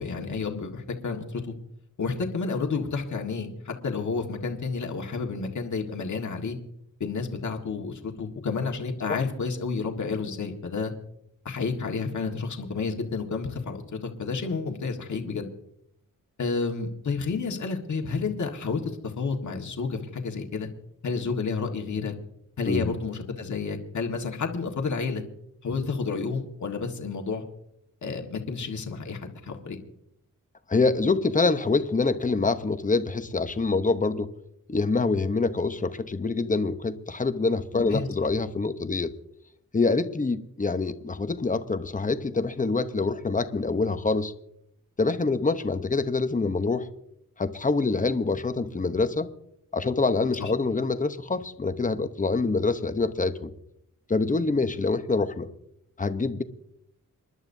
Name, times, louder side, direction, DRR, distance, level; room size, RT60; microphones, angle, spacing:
voice 1, 0.0-1.5 2.0-6.6 7.0-10.9 11.5-15.5 16.4-20.7 21.0-22.1 22.6-25.2 25.6-27.4 28.0-29.8 37.7-38.1 50.4-50.5, left 4 dB, 60° left, 2 dB, 1.7 m, -30 dB
voice 2, 30.7-34.3 34.7-39.1 39.7-44.3 45.0-46.9 47.4-49.3 49.7-53.5 54.1-55.5 56.0-56.4, left 3 dB, 25° left, 10 dB, 0.9 m, -25 dB
27.5 x 11.0 x 2.7 m, 0.78 s
wide cardioid pair, 100°, 33 cm